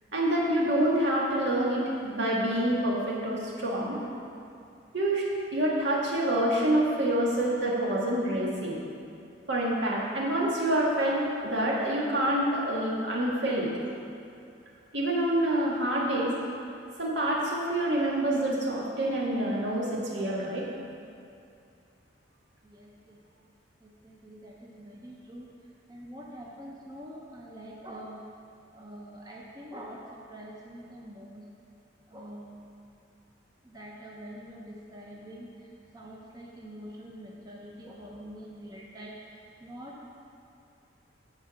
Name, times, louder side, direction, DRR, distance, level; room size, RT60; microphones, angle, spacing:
voice 1, 0.1-4.0 4.9-5.2 5.5-8.8 9.5-13.7 14.9-16.3 17.0-20.6, right 1 dB, 70° right, -4 dB, 2.0 m, -27 dB
voice 2, 22.6-23.2 23.8-25.5 25.9-28.2 28.7-31.4 32.1-32.7 33.6-35.7 35.9-39.2 39.6-40.1, equal, 20° right, -4 dB, 0.8 m, -45 dB
10.0 x 4.8 x 7.0 m, 2.5 s
head